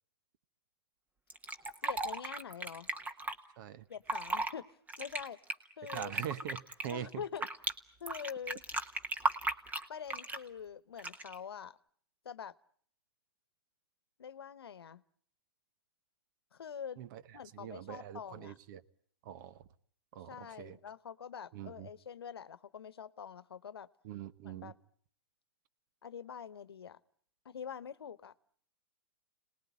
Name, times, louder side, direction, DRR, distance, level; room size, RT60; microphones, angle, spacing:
Fill (with liquid), 1.3-3.3 3.9-4.5 4.9-7.7 8.1-10.5 11.0-11.4, right 2 dB, 15° right, 1.3 m, -36 dB
voice 1, 1.8-2.9 3.9-5.4 5.8-6.1 6.9-7.4 8.0-8.6 9.9-11.8 12.2-12.5 14.2-15.0 16.5-17.0 17.3-18.6 20.3-23.9 24.4-24.7 26.0-27.0 27.4-28.3, left 7 dB, 80° left, 17 dB, 1.0 m, -45 dB
voice 2, 3.6-3.9 5.9-7.2 17.0-18.8 19.2-19.6 20.1-20.8 21.5-21.9 24.0-24.7, right 10 dB, 50° right, 15 dB, 1.2 m, -43 dB
27.0 x 20.0 x 9.5 m, 0.63 s
hypercardioid pair, 120°, 13 cm